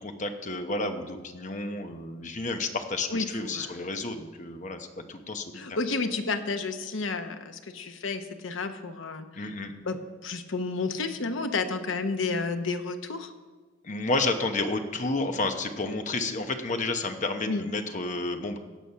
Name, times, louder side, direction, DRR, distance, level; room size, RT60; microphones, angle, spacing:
voice 1, 0.0-5.8 9.3-9.7 13.8-18.6, left 2 dB, 40° left, 7 dB, 0.9 m, -31 dB
voice 2, 5.5-9.5 9.8-13.3 17.4-17.7, left 3 dB, 90° left, 8 dB, 0.9 m, -31 dB
16.5 x 6.3 x 5.6 m, 1.4 s
head